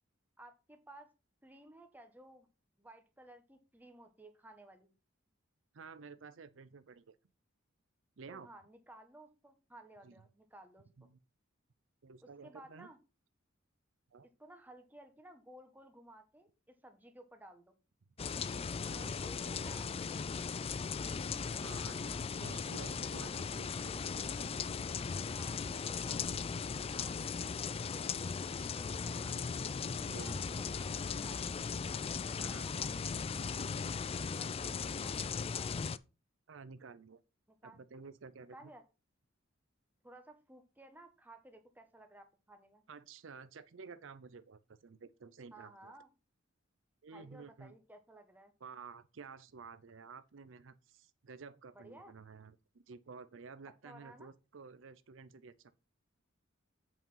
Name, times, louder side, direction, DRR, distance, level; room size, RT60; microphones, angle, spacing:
voice 1, 0.4-1.1 1.4-2.5 2.8-4.9 8.3-10.9 12.2-13.0 14.4-17.7 18.9-20.5 22.6-22.8 25.3-25.6 25.9-26.5 26.9-27.1 27.6-28.4 28.7-29.3 30.0-31.6 32.1-33.7 34.0-35.9 37.5-37.8 38.5-38.8 40.0-42.8 45.5-46.1 47.1-48.5 51.7-52.1 53.8-54.3, right 1 dB, 10° right, 1.4 m, -56 dB
voice 2, 5.7-7.2 8.2-8.5 10.0-10.1 11.0-11.2 12.0-12.9 14.1-14.3 18.9-19.3 21.6-24.4 27.4-27.5 29.2-29.4 30.0-30.4 32.4-32.7 36.5-37.2 37.6-38.7 42.9-45.9 47.0-47.7 48.6-55.7, right 5 dB, 70° right, 0.6 m, -52 dB
sound 1, 18.2-36.0, left 5 dB, 30° left, 0.4 m, -38 dB
8.2 x 4.7 x 5.6 m
head